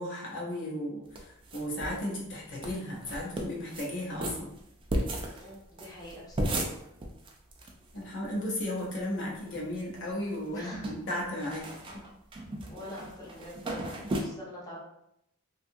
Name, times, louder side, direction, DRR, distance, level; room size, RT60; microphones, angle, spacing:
voice 1, 0.0-4.5 7.9-11.7 11.9-12.0, left 1 dB, 60° left, -3 dB, 0.8 m, -35 dB
sound 1, 1.2-2.0 2.3-2.4 2.6-2.7 3.0-3.9 4.2-7.7 8.0-8.1 8.2-8.9 9.4-10.0 10.3-14.2, right 1 dB, 25° right, 0.4 m, -35 dB
voice 2, 5.4-6.6 10.5-10.9 11.8-11.9 12.7-14.8, left 1 dB, 15° left, -6 dB, 0.6 m, -45 dB
2.8 x 2.4 x 2.6 m, 0.79 s
head